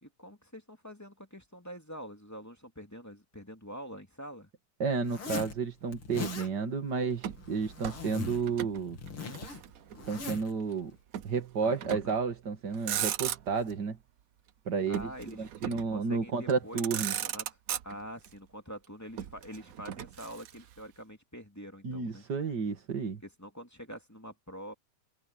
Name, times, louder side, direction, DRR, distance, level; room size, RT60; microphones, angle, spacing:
voice 1, 0.0-4.5 11.6-12.1 14.9-16.9 17.2-17.5 17.8-22.2 23.2-24.7, equal, 10° left, 2.4 m, -45 dB
voice 2, 4.8-9.0 10.1-10.9 11.2-14.0 14.7-15.1 15.4-17.1 21.8-23.2, right 5 dB, 50° right, 2.6 m, -31 dB
Zipper (clothing), 5.0-5.6 5.9-6.5 7.3-8.5 8.8-10.5, left 4 dB, 75° left, 3.9 m, -40 dB
Motor vehicle (road), 7.2-8.8 9.1-10.2 11.1-11.4 11.8-12.2 12.7-13.7 14.9-16.0 16.5-16.6 16.8-18.3 19.2-20.8, right 10 dB, 65° right, 0.8 m, -37 dB
omnidirectional pair, 2.4 m